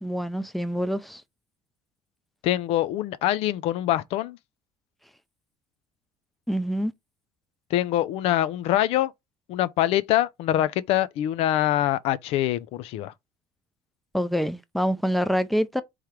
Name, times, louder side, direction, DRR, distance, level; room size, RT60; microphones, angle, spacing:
voice 1, 0.0-1.2 6.5-6.9 14.1-15.8, equal, ahead, 0.5 m, -26 dB
voice 2, 2.4-4.4 7.7-9.1 9.5-13.1, left 13 dB, 70° left, 0.5 m, -24 dB
3.6 x 3.2 x 4.5 m
cardioid pair, 130°, 11 cm